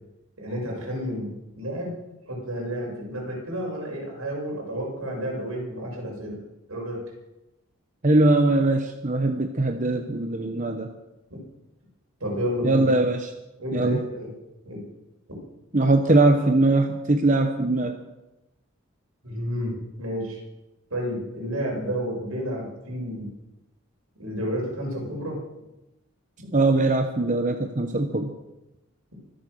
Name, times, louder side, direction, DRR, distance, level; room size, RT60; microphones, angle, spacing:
voice 1, 0.4-1.9 2.2-6.4 6.7-7.0 11.3-11.4 12.2-12.9 13.6-14.3 14.6-14.8 19.2-20.4 20.9-23.3 24.2-25.4, equal, 80° right, -1 dB, 6.6 m, -31 dB
voice 2, 8.0-10.9 12.6-13.3 13.7-14.0 15.7-18.0 26.5-28.3, right 2 dB, 35° right, 6 dB, 0.9 m, -21 dB
24.5 x 8.5 x 6.5 m, 0.96 s
head